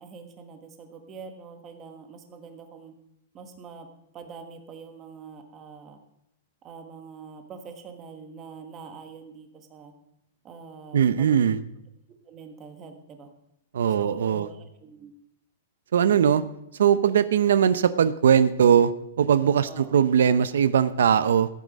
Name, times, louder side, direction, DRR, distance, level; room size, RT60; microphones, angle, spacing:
voice 1, 0.0-2.9 3.3-3.9 4.1-6.0 6.6-9.9 10.4-11.4 12.2-13.3 14.0-15.1 19.6-19.9, right 5 dB, 20° right, 5 dB, 1.3 m, -44 dB
voice 2, 10.9-11.6 13.7-14.5 15.9-16.4 16.8-18.9 19.2-21.5, right 8 dB, 85° right, 14 dB, 0.6 m, -20 dB
15.0 x 8.4 x 5.2 m, 0.81 s
supercardioid pair, 170°, 0 cm